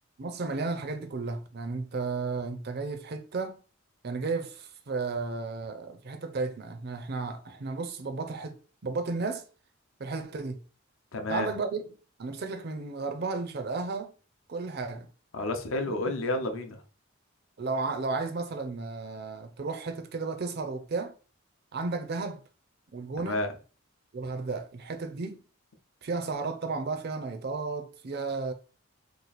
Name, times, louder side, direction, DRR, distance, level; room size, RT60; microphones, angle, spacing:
voice 1, 0.2-3.6 4.0-9.4 10.0-10.6 11.3-11.9 12.2-14.1 14.5-15.1 16.1-16.2 17.6-21.1 21.7-22.4 22.9-23.5 24.1-25.4 26.0-28.5, right 4 dB, 45° right, 0.5 m, -33 dB
voice 2, 11.1-11.5 15.3-16.8 23.2-23.5, left 2 dB, 65° left, 0.7 m, -30 dB
3.0 x 2.4 x 4.0 m
head